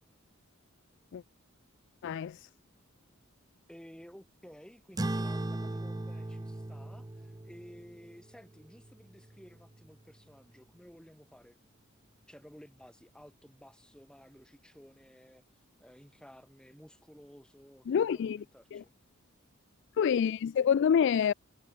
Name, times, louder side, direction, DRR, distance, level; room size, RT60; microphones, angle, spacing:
voice 1, 2.0-2.5 17.9-18.4 18.7-18.8 20.0-21.3, left 7 dB, 60° left, 0.3 m, -27 dB
voice 2, 3.7-11.6 12.3-15.4 15.8-18.9, equal, 5° left, 4.7 m, -54 dB
sound 1, 5.0-9.8, right 2 dB, 20° right, 0.6 m, -38 dB
head